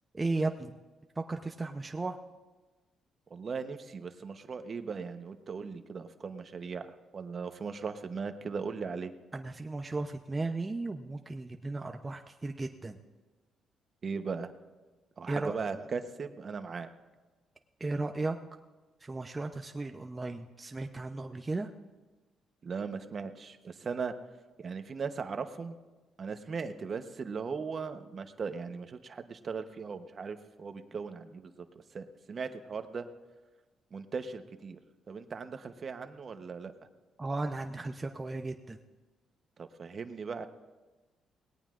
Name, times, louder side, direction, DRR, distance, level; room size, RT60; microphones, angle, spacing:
voice 1, 0.1-0.8 1.2-2.2 9.3-13.0 15.3-15.9 17.8-18.4 19.0-21.7 37.2-38.8, right 3 dB, 20° right, 4 dB, 0.7 m, -35 dB
voice 2, 3.3-9.1 14.0-14.5 15.2-16.9 22.6-24.1 24.6-25.8 26.2-33.1 33.9-34.8 35.1-36.7 39.6-40.5, right 5 dB, 45° right, 9 dB, 0.9 m, -38 dB
19.0 x 17.5 x 2.5 m, 1.2 s
cardioid pair, 90°, 0 cm